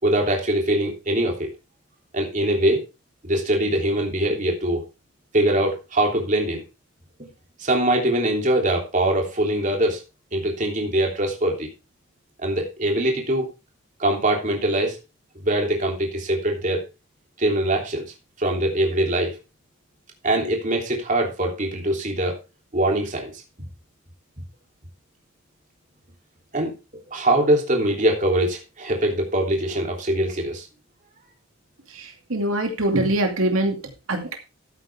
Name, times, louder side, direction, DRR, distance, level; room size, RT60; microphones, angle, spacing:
voice 1, 0.0-1.5 2.1-2.8 3.2-4.8 5.3-6.6 7.6-10.0 10.3-11.7 12.4-13.5 14.0-15.0 15.4-16.8 17.4-18.0 18.4-19.4 20.2-22.4 22.7-23.3 26.5-26.7 27.1-30.7, right 1 dB, 35° right, 1 dB, 3.1 m, -22 dB
voice 2, 31.9-33.8 34.1-34.3, right 1 dB, 80° right, 4 dB, 2.4 m, -23 dB
13.5 x 9.0 x 3.5 m, 0.28 s
head